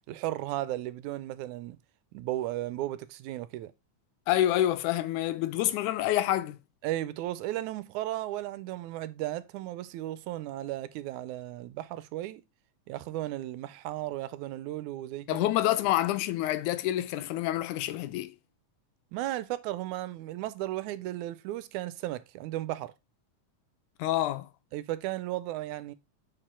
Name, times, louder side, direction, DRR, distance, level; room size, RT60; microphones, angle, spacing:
voice 1, 0.1-1.8 2.1-3.7 6.8-12.4 12.9-15.5 19.1-22.9 24.7-25.9, right 15 dB, 85° right, 2.0 m, -35 dB
voice 2, 4.3-6.6 15.3-18.4 24.0-24.5, left 13 dB, 80° left, 2.1 m, -27 dB
6.6 x 4.9 x 4.3 m
omnidirectional pair, 3.5 m